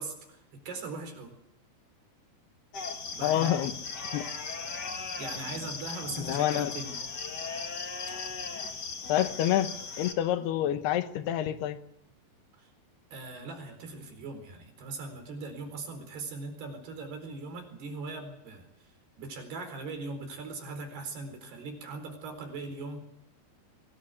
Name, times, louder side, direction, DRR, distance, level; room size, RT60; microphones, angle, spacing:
voice 1, 0.0-1.4 3.1-3.6 4.9-7.0 12.6-12.7 13.1-18.9 19.2-23.0, right 3 dB, 75° right, 6 dB, 6.3 m, -40 dB
sound 1, 2.7-10.1, left 4 dB, 40° left, 1.5 m, -37 dB
voice 2, 3.2-3.8 4.1-4.3 6.2-6.7 9.1-9.7 10.0-11.8, left 12 dB, 80° left, 10 dB, 3.2 m, -27 dB
23.5 x 19.0 x 8.3 m, 0.78 s
omnidirectional pair, 4.7 m